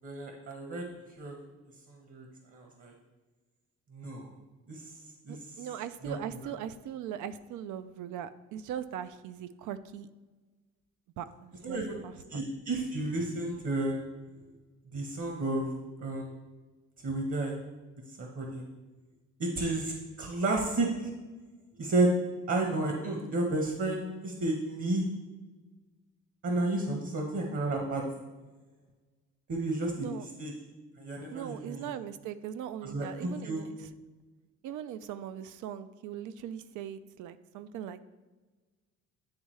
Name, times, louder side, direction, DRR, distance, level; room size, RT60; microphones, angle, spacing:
voice 1, 0.0-0.8 1.2-1.4 1.9-2.3 2.5-2.9 3.9-4.3 4.7-4.8 5.3-5.4 6.0-6.2 11.6-12.0 12.3-14.0 14.9-15.7 16.0-16.3 17.0-17.6 18.2-18.6 19.4-19.9 20.2-21.1 21.8-22.1 22.5-25.1 26.4-28.0 29.5-30.5 31.0-31.8 32.8-33.6, right 2 dB, 50° right, 1 dB, 1.1 m, -31 dB
voice 2, 5.3-10.1 11.2-12.4 30.0-30.3 31.3-33.9 34.6-38.0, right 9 dB, 80° right, 13 dB, 0.5 m, -40 dB
9.6 x 3.6 x 3.1 m, 1.2 s
cardioid pair, 90°, 30 cm